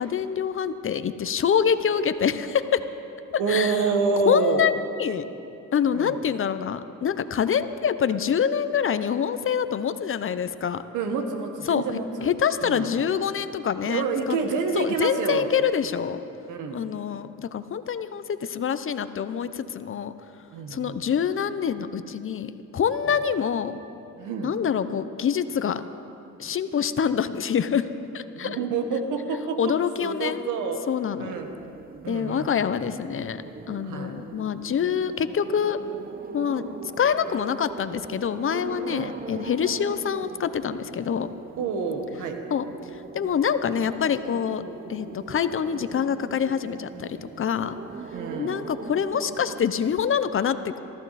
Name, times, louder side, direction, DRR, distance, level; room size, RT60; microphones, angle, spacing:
voice 1, 0.0-2.8 3.5-3.8 4.3-4.7 5.0-5.3 5.7-10.8 11.7-11.8 12.2-14.4 14.8-16.2 16.7-20.1 20.7-23.8 24.4-25.8 26.4-27.9 28.1-28.6 29.6-30.4 30.9-31.3 32.1-35.8 36.3-36.7 37.0-41.3 42.5-42.6 43.1-44.6 44.9-47.8 48.4-50.8, left 7 dB, 45° left, 12 dB, 0.8 m, -26 dB
voice 2, 3.4-4.7 5.9-6.2 10.9-12.3 12.6-12.9 13.8-15.5 16.5-16.8 20.5-21.0 24.2-24.5 28.4-29.7 30.0-30.8 31.2-31.5 32.0-32.5 33.8-34.2 38.9-39.1 41.6-42.4 48.1-48.6, right 4 dB, 90° right, 5 dB, 1.6 m, -28 dB
sound 1, 31.3-49.6, right 5 dB, 30° right, 0.7 m, -40 dB
23.5 x 14.5 x 4.2 m, 2.8 s
cardioid pair, 90°, 30 cm